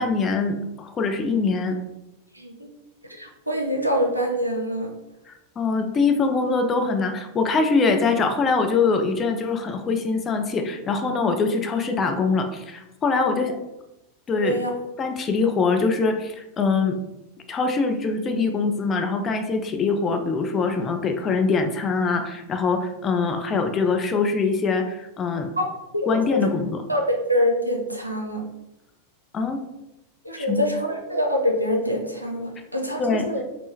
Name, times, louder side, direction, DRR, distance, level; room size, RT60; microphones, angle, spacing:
voice 1, 0.0-1.8 5.3-13.5 14.3-14.5 15.0-17.0 17.5-25.5 26.1-26.7 29.3-29.6 30.4-30.6 33.0-33.3, left 4 dB, 25° left, 5 dB, 0.4 m, -23 dB
voice 2, 2.3-2.7 3.1-4.9 14.3-14.7 25.6-25.7 25.9-26.4 26.9-28.4 30.2-33.4, equal, 90° right, 2 dB, 0.4 m, -25 dB
3.5 x 2.0 x 2.7 m, 0.91 s
figure-of-eight pair, 90°, 0 cm